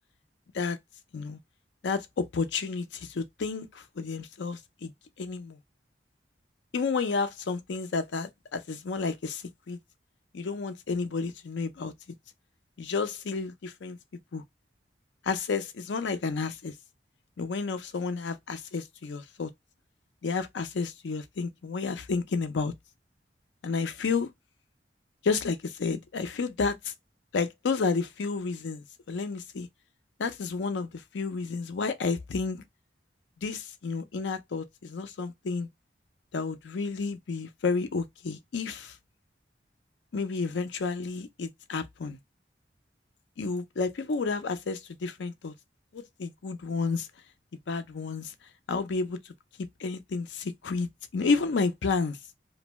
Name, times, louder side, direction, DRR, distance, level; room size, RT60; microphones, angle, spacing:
voice 1, 1.8-4.9 5.2-5.6 6.7-9.8 10.3-11.9 12.8-14.0 14.3-14.4 15.2-16.7 17.4-19.5 20.2-22.7 23.6-24.3 25.2-26.9 27.3-29.7 30.2-32.6 33.4-35.7 36.3-39.0 40.1-42.2 43.4-45.5 45.9-47.1 47.7-48.3 48.7-49.3 49.8-52.2, left 4 dB, 85° left, 0.5 m, -31 dB
2.6 x 2.1 x 3.0 m
head